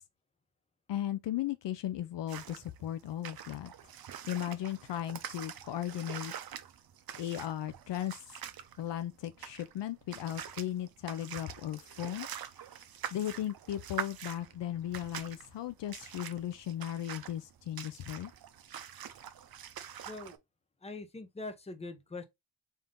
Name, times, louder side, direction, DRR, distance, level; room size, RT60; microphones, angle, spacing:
voice 1, 0.9-3.7 4.3-6.3 7.2-8.1 8.8-12.3 13.1-18.3, left 12 dB, 65° left, 0.5 m, -36 dB
sound 1, 2.3-20.4, right 9 dB, 50° right, 0.6 m, -45 dB
voice 2, 20.8-22.2, left 3 dB, 15° left, 0.7 m, -42 dB
3.6 x 2.7 x 3.6 m
cardioid pair, 100°, 46 cm